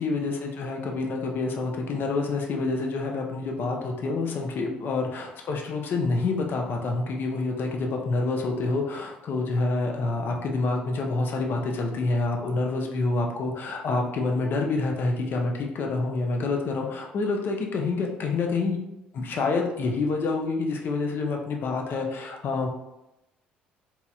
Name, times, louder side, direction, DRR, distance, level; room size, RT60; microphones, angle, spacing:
voice 1, 0.0-18.8 19.1-22.7, left 3 dB, 45° left, 1 dB, 0.5 m, -27 dB
3.0 x 2.8 x 2.3 m, 0.92 s
figure-of-eight pair, 50°, 5 cm